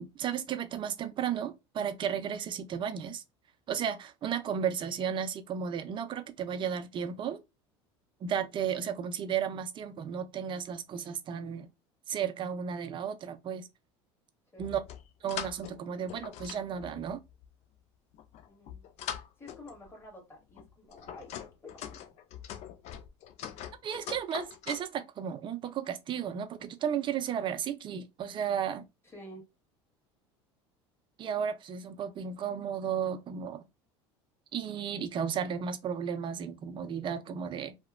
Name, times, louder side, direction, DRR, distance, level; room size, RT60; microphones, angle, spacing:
voice 1, 0.0-3.2 3.7-7.4 8.2-11.7 12.1-13.7 14.6-14.8 15.2-17.2 23.8-28.8 31.2-33.6 34.5-37.7, right 8 dB, 35° right, 0.4 m, -34 dB
sound 1, 14.6-15.8 16.1-17.5 18.1-19.9 20.5-24.9, left 10 dB, 50° left, 0.4 m, -42 dB
voice 2, 18.5-18.9 19.4-22.2 29.0-29.4, left 1 dB, 15° left, 1.6 m, -50 dB
2.8 x 2.1 x 2.4 m
hypercardioid pair, 90°, 14 cm